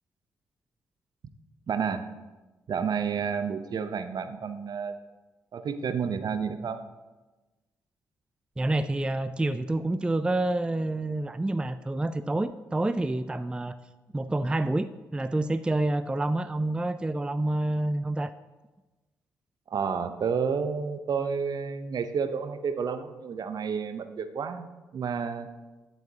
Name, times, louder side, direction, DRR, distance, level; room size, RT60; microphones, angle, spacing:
voice 1, 1.7-2.1 2.7-5.0 5.5-6.8 19.7-25.5, right 6 dB, 50° right, 10 dB, 0.7 m, -30 dB
voice 2, 8.6-13.8 14.1-18.3, right 2 dB, 10° right, 12 dB, 0.3 m, -28 dB
11.5 x 7.2 x 2.8 m, 1.2 s
hypercardioid pair, 40°, 9 cm